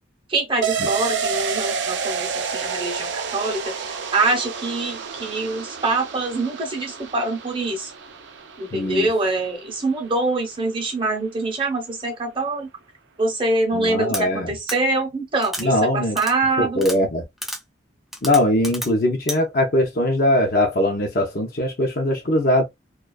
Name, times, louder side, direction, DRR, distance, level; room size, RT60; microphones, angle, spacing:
voice 1, 0.3-7.9 8.6-12.7 13.2-16.8, right 2 dB, 25° right, 0.8 m, -24 dB
sound 1, 0.6-10.0 10.3-10.4, right 6 dB, 65° right, 0.4 m, -29 dB
voice 2, 8.7-9.1 13.7-14.5 15.6-16.2 16.6-17.2 18.2-22.6, left 1 dB, 50° left, 0.6 m, -21 dB
sound 2, 14.1-14.2 14.7-14.8 15.4-15.7 16.2-16.3 16.8-17.0 17.4-17.6 18.1-18.9 19.3-19.4, equal, ahead, 0.3 m, -30 dB
2.4 x 2.3 x 2.3 m
head